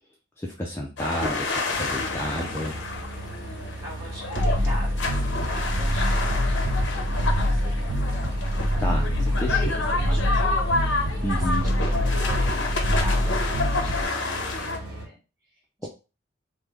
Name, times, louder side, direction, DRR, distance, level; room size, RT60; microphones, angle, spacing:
voice 1, 0.4-2.8 8.8-9.6 11.2-11.6, left 1 dB, 15° left, -2 dB, 0.4 m, -30 dB
sound 1, 1.0-14.8, left 3 dB, 75° left, 0.6 m, -29 dB
sound 2, 1.7-15.0, right 1 dB, 50° right, 1.8 m, -38 dB
voice 2, 3.8-7.8 9.3-11.9 12.2-13.4 13.7-14.3 14.6-15.2 15.5-15.6 15.8-15.9, equal, 20° right, -6 dB, 1.9 m, -41 dB
sound 3, 4.3-14.0, equal, 75° right, 0.5 m, -25 dB
3.4 x 2.1 x 3.3 m, 0.32 s
head